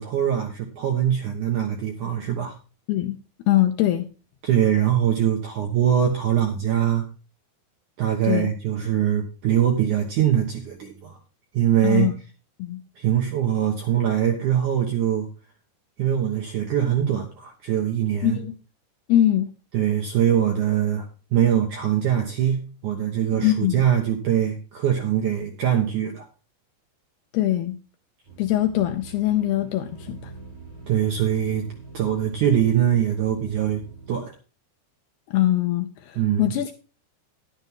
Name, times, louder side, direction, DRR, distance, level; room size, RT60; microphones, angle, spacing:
voice 1, 0.0-2.6 4.4-7.0 8.0-11.2 11.5-12.1 13.0-15.3 16.0-18.4 19.7-26.2 30.9-31.6 31.9-33.8 34.1-34.3 36.2-36.5, right 10 dB, 70° right, 1.9 m, -22 dB
voice 2, 3.5-4.1 8.2-8.5 11.8-12.1 12.6-12.8 18.2-18.5 19.1-19.5 23.4-23.8 27.3-27.8 28.4-30.3 35.3-36.7, left 13 dB, 80° left, 2.4 m, -22 dB
sound 1, 28.2-34.2, right 4 dB, 40° right, 8.1 m, -43 dB
11.0 x 10.5 x 3.6 m
omnidirectional pair, 5.3 m